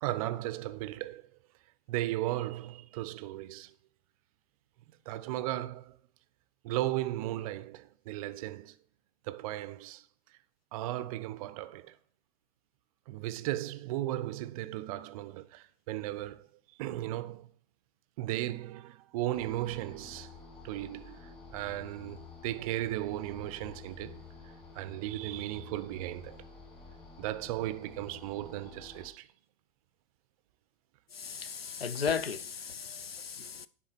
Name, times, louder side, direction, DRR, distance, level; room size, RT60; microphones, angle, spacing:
voice 1, 0.0-1.3 1.9-3.7 4.9-6.0 6.6-8.7 9.2-10.1 10.7-12.0 13.1-16.5 16.8-17.5 18.2-20.3 20.6-26.4 27.2-29.3, right 15 dB, 40° right, 0.5 m, -36 dB
sound 1, 19.3-29.1, left 4 dB, 20° left, 2.3 m, -50 dB
voice 2, 31.1-33.7, left 6 dB, 85° left, 0.5 m, -35 dB
10.0 x 3.7 x 4.5 m
figure-of-eight pair, 100°, 29 cm